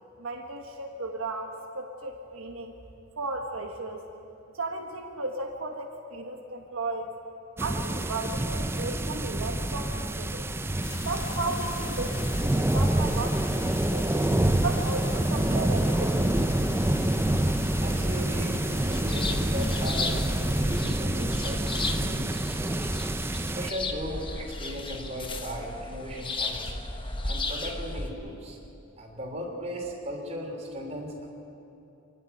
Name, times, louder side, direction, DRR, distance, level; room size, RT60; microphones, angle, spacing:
voice 1, 0.2-2.7 3.2-4.0 4.5-7.2 7.6-10.5 11.0-14.1 14.6-16.5, right 2 dB, 80° right, 2 dB, 1.4 m, -35 dB
sound 1, 7.6-23.7, right 1 dB, 10° right, 0.5 m, -27 dB
sound 2, 10.8-20.8, left 7 dB, 60° left, 0.6 m, -43 dB
voice 2, 17.8-22.9 23.5-26.7 27.2-28.6 29.0-31.3, equal, 30° right, 0 dB, 3.4 m, -37 dB
sound 3, 18.6-28.1, left 3 dB, 25° left, 1.2 m, -35 dB
26.5 x 12.0 x 9.1 m, 2.8 s
head